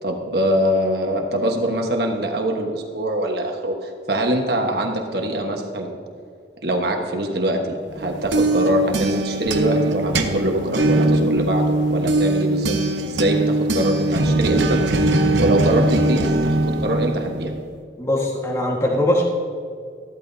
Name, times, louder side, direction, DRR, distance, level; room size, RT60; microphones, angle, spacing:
voice 1, 0.0-5.9 6.6-12.8 13.0-14.8 15.4-17.5, right 1 dB, 60° right, 2 dB, 1.3 m, -23 dB
sound 1, 8.0-17.6, right 2 dB, 85° right, 0.9 m, -21 dB
voice 2, 18.0-19.2, left 1 dB, 15° left, -1 dB, 1.5 m, -21 dB
14.0 x 12.5 x 2.7 m, 2.2 s
head